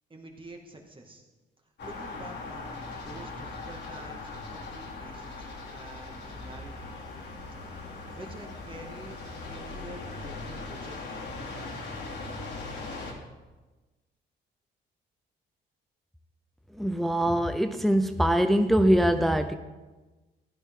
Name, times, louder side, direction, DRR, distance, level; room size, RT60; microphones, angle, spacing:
voice 1, 0.1-1.2 1.8-6.9 7.7-7.8 8.1-9.2 9.5-11.0, right 2 dB, 25° right, 2.2 m, -47 dB
sound 1, 1.8-13.1, left 3 dB, 65° left, 2.9 m, -40 dB
voice 2, 16.7-19.5, equal, ahead, 0.7 m, -23 dB
15.0 x 10.5 x 3.8 m
cardioid pair, 90°, 20 cm